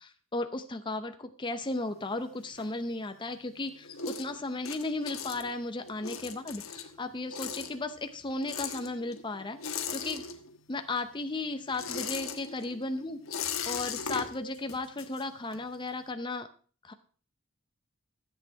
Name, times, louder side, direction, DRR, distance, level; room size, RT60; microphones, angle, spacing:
voice 1, 0.0-10.2 10.7-13.2 13.7-16.5 16.8-16.9, left 2 dB, 25° left, 8 dB, 0.7 m, -35 dB
sound 1, 1.6-3.2 3.6-10.8 11.1-15.8, left 6 dB, 85° left, 1.3 m, -39 dB
13.5 x 8.4 x 4.6 m, 0.41 s
head